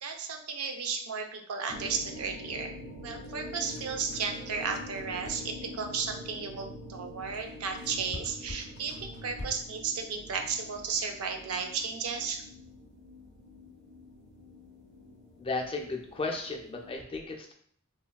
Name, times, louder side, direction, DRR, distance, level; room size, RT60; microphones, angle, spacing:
voice 1, 0.0-2.7 3.0-12.4, right 5 dB, 90° right, 5 dB, 0.4 m, -34 dB
sound 1, 1.7-17.0, left 1 dB, 55° right, 0.9 m, -46 dB
sound 2, 3.2-5.7 7.3-9.8, left 1 dB, 80° left, 0.7 m, -45 dB
voice 2, 15.4-17.5, left 3 dB, 25° left, 2 dB, 0.4 m, -34 dB
3.2 x 2.2 x 2.2 m, 0.62 s
head